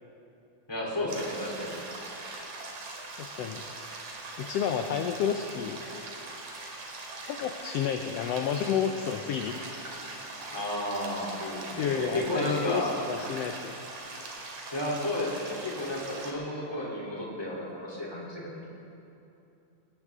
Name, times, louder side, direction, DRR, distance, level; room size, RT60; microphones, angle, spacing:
voice 1, 0.7-1.8 10.5-12.9 14.7-18.7, left 1 dB, 10° left, -5 dB, 3.0 m, -32 dB
sound 1, 1.1-16.3, right 2 dB, 85° right, 3.4 m, -41 dB
voice 2, 3.2-3.6 4.4-5.8 7.2-9.5 11.8-13.8, left 8 dB, 75° left, 5 dB, 1.5 m, -30 dB
20.0 x 18.0 x 3.6 m, 2.8 s
omnidirectional pair, 3.4 m